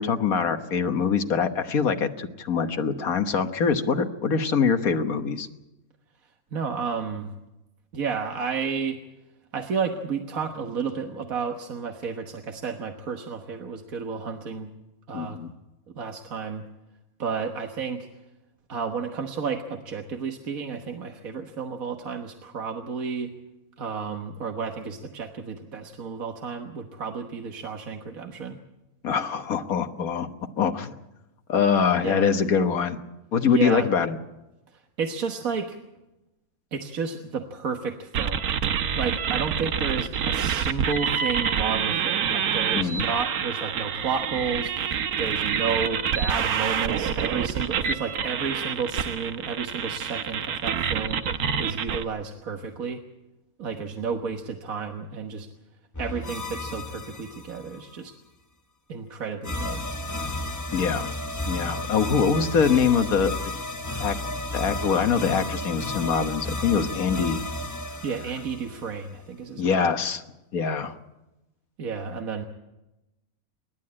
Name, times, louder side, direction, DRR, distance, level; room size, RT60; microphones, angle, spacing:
voice 1, 0.0-5.5 15.1-15.5 29.0-30.3 30.6-30.9 31.5-33.0 33.3-34.2 42.7-43.0 60.7-61.1 61.5-63.3 64.0-64.2 64.5-67.4 69.6-70.2 70.5-71.0, left 6 dB, 75° left, 8 dB, 1.7 m, -24 dB
voice 2, 6.2-7.3 7.9-9.0 9.5-14.7 15.1-15.4 15.9-16.6 17.2-18.2 18.7-23.3 23.8-28.6 32.0-32.4 33.4-33.9 34.7-35.8 36.7-38.4 38.9-53.0 53.6-55.5 56.0-58.1 58.9-59.8 68.0-69.8 71.8-72.4, right 5 dB, 70° right, 4 dB, 1.7 m, -32 dB
sound 1, 38.1-52.0, right 7 dB, 85° right, 1.4 m, -27 dB
sound 2, 55.9-57.8 59.4-69.2, left 2 dB, 15° left, 0.8 m, -33 dB
28.0 x 12.0 x 8.7 m, 0.98 s
omnidirectional pair, 1.6 m